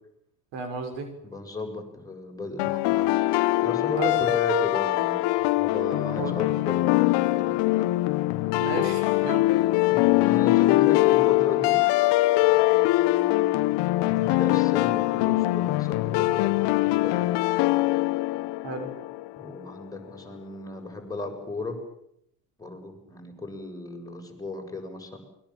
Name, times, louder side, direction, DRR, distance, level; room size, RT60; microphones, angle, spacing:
voice 1, 0.5-1.1 3.9-4.1 6.0-6.4 8.6-9.5 18.6-18.9, right 4 dB, 60° right, 6 dB, 6.3 m, -33 dB
voice 2, 1.2-3.1 3.6-7.9 9.9-11.8 12.4-17.3 19.4-21.8 22.6-25.2, left 2 dB, 5° left, 1 dB, 7.2 m, -35 dB
sound 1, 2.6-19.5, left 18 dB, 55° left, 1.3 m, -23 dB
28.5 x 22.5 x 7.6 m, 0.76 s
hypercardioid pair, 90°, 49 cm